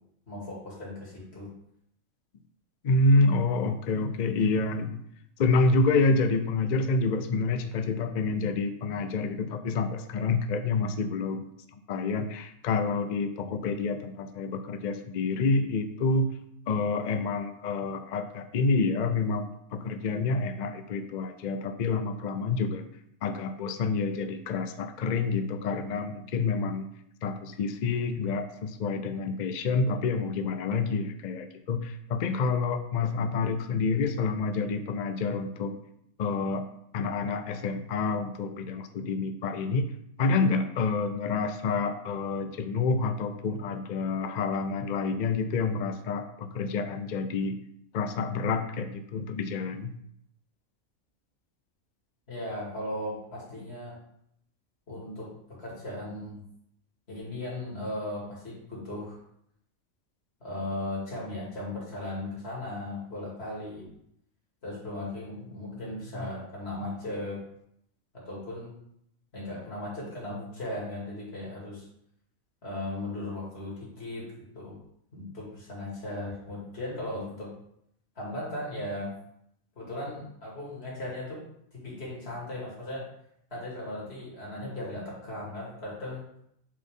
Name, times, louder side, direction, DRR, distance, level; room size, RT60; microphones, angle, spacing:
voice 1, 0.3-1.5 13.4-13.5 52.3-54.0 54.9-55.3 55.6-56.4 57.1-59.2 60.4-63.9 64.6-67.4 68.1-68.7 69.3-71.9 72.6-74.3 74.5-74.8 75.1-77.5 78.2-79.1 79.8-81.4 81.8-83.0 83.5-86.3, left 1 dB, 50° left, -5 dB, 2.5 m, -37 dB
voice 2, 2.8-5.0 5.4-11.5 11.9-16.3 16.7-22.8 23.2-26.9 27.2-35.8 36.2-36.6 36.9-39.9 40.2-47.6 47.9-49.9 66.1-66.3, left 3 dB, 70° left, 8 dB, 0.4 m, -28 dB
7.4 x 4.1 x 3.6 m, 0.74 s
omnidirectional pair, 1.4 m